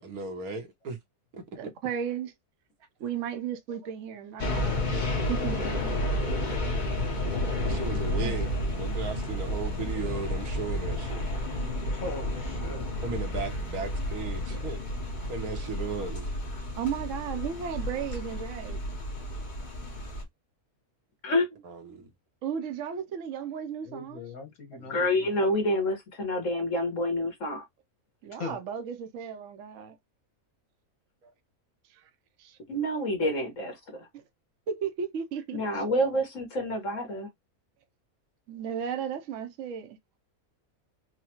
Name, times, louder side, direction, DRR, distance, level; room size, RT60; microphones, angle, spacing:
voice 1, 0.0-1.0 1.3-1.7 3.7-3.8 6.9-7.0 7.6-11.3 13.0-14.8 15.2-16.3 21.6-22.1 24.8-24.9 31.2-31.3, right 4 dB, 85° right, 1.5 m, -36 dB
voice 2, 1.6-2.3 3.0-6.0 8.2-8.4 16.8-18.8 22.4-24.3 28.2-30.0 31.9-32.0 32.4-32.6 34.1-34.2 34.7-35.8 38.5-40.0, right 8 dB, 65° right, 1.0 m, -35 dB
sound 1, 4.4-20.2, left 1 dB, 35° left, 1.0 m, -31 dB
voice 3, 11.9-12.9 15.7-15.8 23.8-25.5 28.3-28.6, left 3 dB, 75° left, 1.8 m, -40 dB
voice 4, 21.2-21.6 24.9-27.6 32.7-34.1 35.5-37.3, left 1 dB, 60° left, 1.8 m, -28 dB
4.8 x 2.2 x 2.9 m
omnidirectional pair, 1.5 m